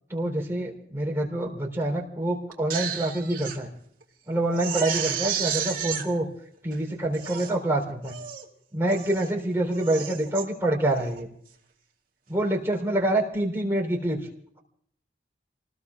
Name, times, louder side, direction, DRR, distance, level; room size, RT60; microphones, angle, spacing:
voice 1, 0.1-3.7 4.3-6.3 6.6-8.2 8.7-11.3 12.3-14.2, right 1 dB, 15° right, 0 dB, 3.7 m, -26 dB
Crying sobbing, 2.5-3.6 4.0-4.1 4.5-6.0 6.7-6.8 7.1-7.6 8.1-8.5 8.9-9.3 9.7-10.4 10.9-11.2, right 8 dB, 50° right, 2.4 m, -32 dB
29.5 x 20.0 x 2.5 m, 0.66 s
head